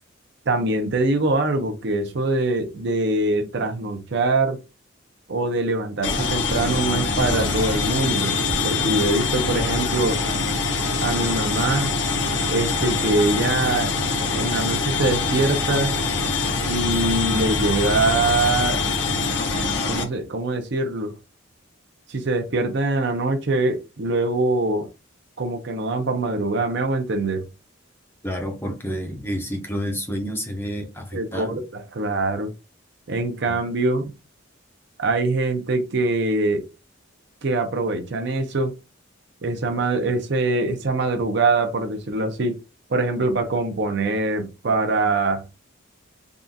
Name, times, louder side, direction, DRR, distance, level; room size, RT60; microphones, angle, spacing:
voice 1, 0.5-4.6 5.3-8.4 8.6-10.2 11.0-11.9 12.5-13.9 14.2-15.9 16.6-18.9 19.9-21.1 22.1-24.9 25.4-27.4 31.1-32.5 33.1-34.1 35.0-36.7 37.4-38.7 39.4-42.6 42.9-45.4, right 2 dB, 55° right, 0.6 m, -23 dB
sound 1, 6.0-20.0, left 4 dB, 55° left, 0.7 m, -24 dB
voice 2, 28.2-31.6 33.5-33.6, equal, 10° left, 0.6 m, -29 dB
3.6 x 2.4 x 2.6 m
head